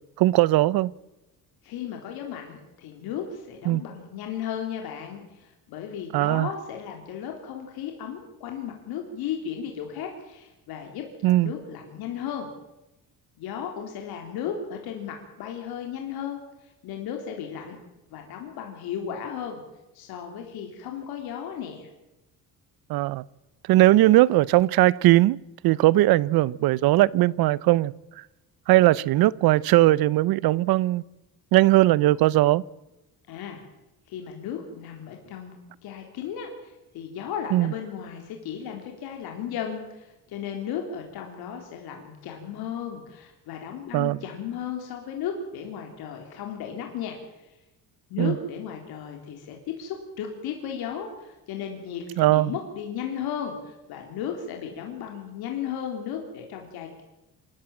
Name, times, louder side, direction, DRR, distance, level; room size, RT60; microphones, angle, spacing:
voice 1, 0.2-0.9 3.7-3.8 6.1-6.5 11.2-11.5 22.9-23.2 23.7-25.4 25.6-27.9 28.7-31.0 31.5-32.6 37.5-37.7 43.9-44.2 48.2-48.4 52.2-52.5, right 17 dB, 80° right, 0.8 m, -19 dB
voice 2, 1.6-12.5 13.4-17.8 18.1-19.6 19.9-21.9 33.3-33.6 34.1-47.2 47.4-47.5 48.1-57.0, left 8 dB, 90° left, 3.7 m, -35 dB
27.5 x 13.5 x 9.0 m
cardioid pair, 165°, 36 cm